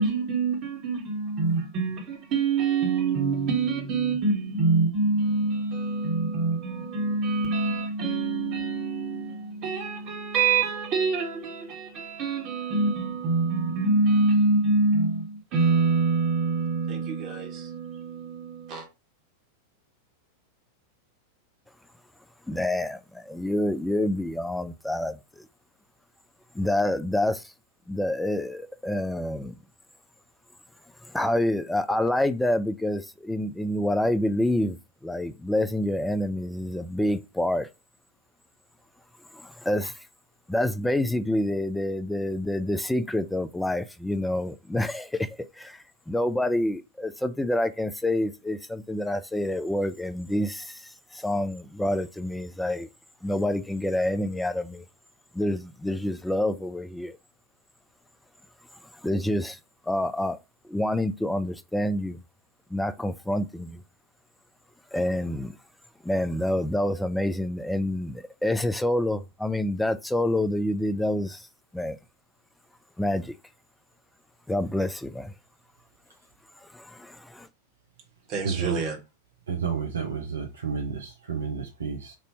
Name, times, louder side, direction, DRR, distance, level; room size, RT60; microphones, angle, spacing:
voice 1, 0.0-18.8 78.3-79.0, right 3 dB, 35° right, 1.5 m, -25 dB
voice 2, 22.5-25.2 26.5-27.5 27.9-29.5 31.1-37.7 39.3-39.9 40.5-45.3 45.6-52.9 53.2-54.8 55.3-57.2 59.0-59.6 59.8-60.4 60.7-62.2 62.7-63.8 64.9-65.6 66.0-71.5 71.7-72.0 73.0-73.4 74.5-75.3 76.6-77.5, left 1 dB, 5° left, 0.4 m, -27 dB
voice 3, 78.4-78.8 79.5-82.1, right 6 dB, 70° right, 0.7 m, -31 dB
3.3 x 2.7 x 4.0 m
figure-of-eight pair, 90°, 0 cm